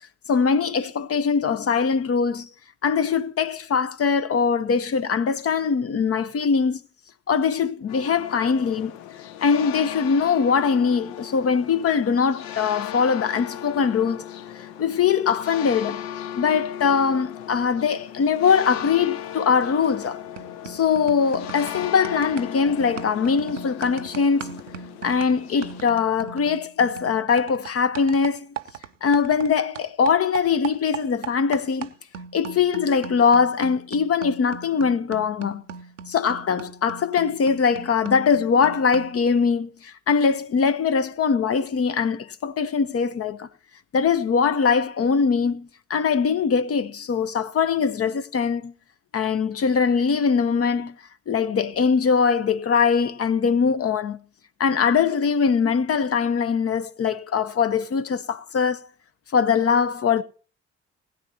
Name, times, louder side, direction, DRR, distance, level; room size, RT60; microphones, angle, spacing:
voice 1, 0.3-2.5 2.8-6.8 7.3-8.9 9.4-14.2 14.5-16.0 16.3-20.2 20.6-24.6 25.0-28.5 29.0-31.9 32.3-35.6 36.1-43.5 43.9-48.7 49.1-51.0 51.3-54.2 54.6-58.9 59.3-60.2, left 6 dB, 40° left, 0.9 m, -22 dB
sound 1, 7.9-25.8, left 10 dB, 65° left, 0.8 m, -37 dB
sound 2, 19.8-20.1 20.4-29.5 29.8-39.2, right 7 dB, 90° right, 0.5 m, -39 dB
19.5 x 9.4 x 2.8 m
figure-of-eight pair, 40°, 36 cm